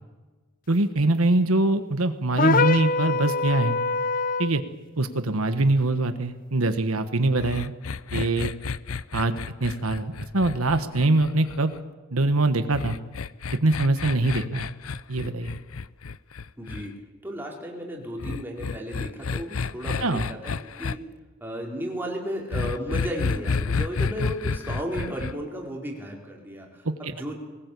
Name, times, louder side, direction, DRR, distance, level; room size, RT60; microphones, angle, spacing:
voice 1, 0.7-3.8 4.4-4.6 5.0-7.7 8.1-8.5 9.1-11.7 12.1-13.0 13.6-14.7 15.1-15.5 20.0-20.3 27.0-27.1, right 2 dB, 85° right, 9 dB, 1.5 m, -23 dB
sound 1, 2.4-4.6, left 3 dB, 40° left, 0.7 m, -24 dB
sound 2, 7.4-11.8 12.7-16.9 18.2-20.9 22.5-25.3, left 4 dB, 80° left, 0.7 m, -30 dB
voice 2, 16.6-16.9 17.2-21.0 21.4-27.4, equal, 10° right, -1 dB, 4.3 m, -34 dB
21.5 x 19.5 x 8.5 m, 1.3 s
head